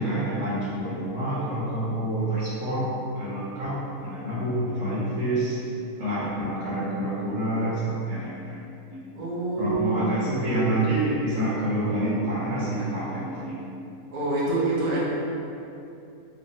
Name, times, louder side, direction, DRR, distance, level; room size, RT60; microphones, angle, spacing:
voice 1, 0.0-2.9 3.1-5.6 6.0-8.6 8.9-9.0 9.6-13.6, right 1 dB, 65° right, -10 dB, 1.0 m, -27 dB
voice 2, 9.2-10.5 14.1-15.0, right 2 dB, 85° right, -7 dB, 0.3 m, -26 dB
3.0 x 2.1 x 2.7 m, 2.7 s
omnidirectional pair, 1.6 m